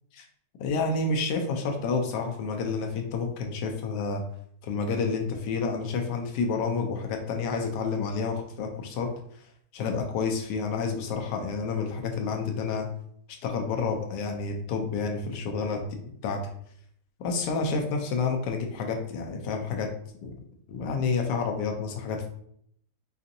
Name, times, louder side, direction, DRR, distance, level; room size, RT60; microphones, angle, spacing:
voice 1, 0.6-4.2 4.6-9.1 9.7-12.9 13.4-15.8 16.2-16.5 17.2-19.9 20.2-20.3 20.7-22.3, left 4 dB, 80° left, 3 dB, 1.3 m, -29 dB
4.9 x 2.6 x 2.5 m, 0.66 s
omnidirectional pair, 1.8 m